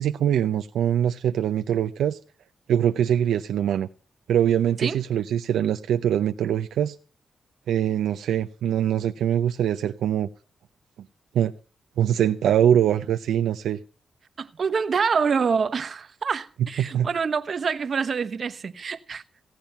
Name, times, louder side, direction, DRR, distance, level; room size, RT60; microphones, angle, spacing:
voice 1, 0.0-2.2 2.7-3.9 4.3-6.9 7.7-10.3 11.3-11.5 12.0-13.8 16.8-17.1, right 10 dB, 90° right, 0.5 m, -23 dB
voice 2, 14.4-19.2, right 5 dB, 55° right, 1.1 m, -26 dB
17.5 x 8.8 x 5.6 m
cardioid pair, 70°, 0 cm